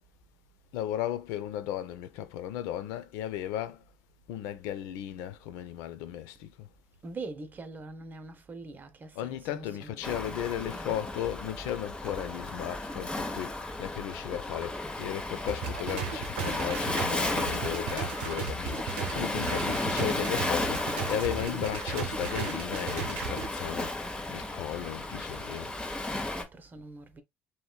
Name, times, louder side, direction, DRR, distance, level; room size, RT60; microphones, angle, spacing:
voice 1, 0.7-3.8 4.3-6.7 9.2-23.9 24.3-25.7, left 11 dB, 70° left, 0.4 m, -35 dB
voice 2, 7.0-10.4 26.1-27.2, right 3 dB, 35° right, 0.7 m, -43 dB
Waves surf, 10.0-26.4, left 2 dB, 15° left, 0.9 m, -34 dB
sound 1, 15.5-23.5, right 6 dB, 80° right, 0.7 m, -36 dB
3.0 x 2.9 x 2.2 m
hypercardioid pair, 65°, 6 cm